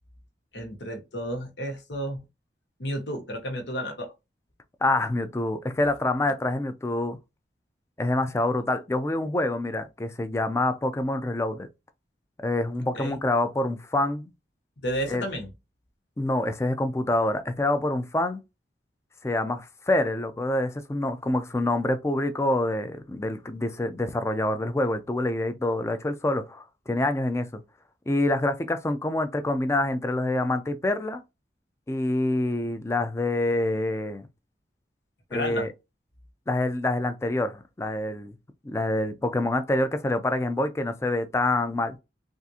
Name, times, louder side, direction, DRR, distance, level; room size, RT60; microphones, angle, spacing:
voice 1, 0.5-2.2 2.8-4.1 12.9-13.2 14.8-15.5 35.3-35.7, equal, 90° left, 1.1 m, -32 dB
voice 2, 4.8-7.2 8.0-11.7 12.4-14.3 15.1-15.2 16.2-18.4 19.2-27.6 28.1-31.2 31.9-34.3 35.3-35.7 36.5-38.3 38.6-42.0, left 2 dB, 15° left, 0.4 m, -26 dB
3.5 x 2.5 x 2.7 m
head